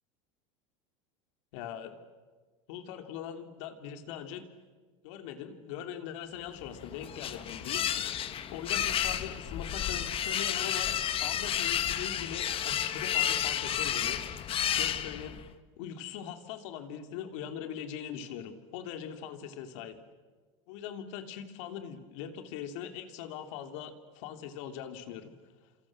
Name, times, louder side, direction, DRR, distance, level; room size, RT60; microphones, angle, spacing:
voice 1, 1.5-1.9 2.7-4.4 5.0-14.2 14.8-15.4 15.8-20.0 20.7-25.3, left 9 dB, 70° left, 7 dB, 3.1 m, -41 dB
sound 1, 6.6-15.5, left 10 dB, 35° left, 1.5 m, -31 dB
29.0 x 27.5 x 7.5 m, 1.4 s
supercardioid pair, 125°, 16 cm